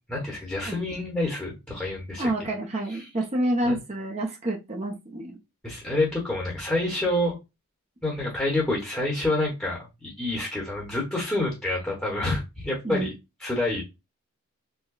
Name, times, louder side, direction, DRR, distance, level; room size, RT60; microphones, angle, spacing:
voice 1, 0.1-2.5 2.9-3.1 3.6-3.8 5.6-7.4 8.0-13.1 13.4-13.8, left 2 dB, 10° left, 1.0 m, -28 dB
voice 2, 2.2-5.4 12.8-13.1, right 1 dB, 30° right, 0.7 m, -28 dB
4.7 x 2.2 x 2.3 m
head